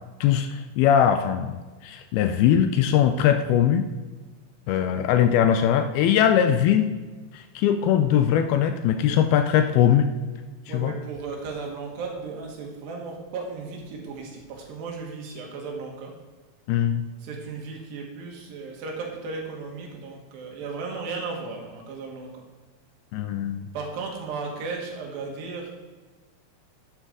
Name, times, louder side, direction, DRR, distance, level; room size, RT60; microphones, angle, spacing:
voice 1, 0.2-1.5 1.8-3.9 4.7-6.9 7.3-10.1 10.7-10.9 16.7-17.1 23.1-23.7, left 9 dB, 80° left, 7 dB, 2.3 m, -21 dB
voice 2, 10.7-16.1 17.2-22.4 23.7-25.7, right 4 dB, 80° right, 0 dB, 3.8 m, -35 dB
11.5 x 8.9 x 3.7 m, 1.3 s
omnidirectional pair, 4.8 m